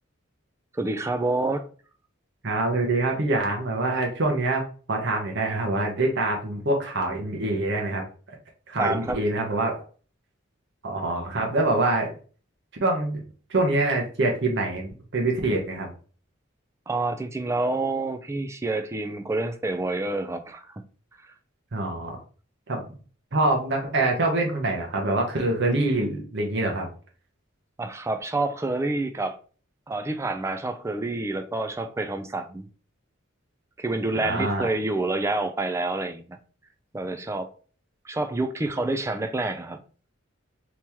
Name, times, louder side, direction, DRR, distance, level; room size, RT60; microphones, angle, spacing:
voice 1, 0.8-1.7 8.8-9.2 16.9-20.8 27.8-29.4 29.9-32.7 33.8-36.4 36.9-37.5 38.0-39.8, right 2 dB, 15° right, 0.3 m, -28 dB
voice 2, 2.4-8.0 8.7-9.8 10.8-12.1 12.8-13.2 13.5-15.9 21.7-22.2 22.7-22.9 23.3-26.9 34.1-34.7, right 2 dB, 60° right, 0.8 m, -25 dB
3.0 x 2.9 x 3.5 m
head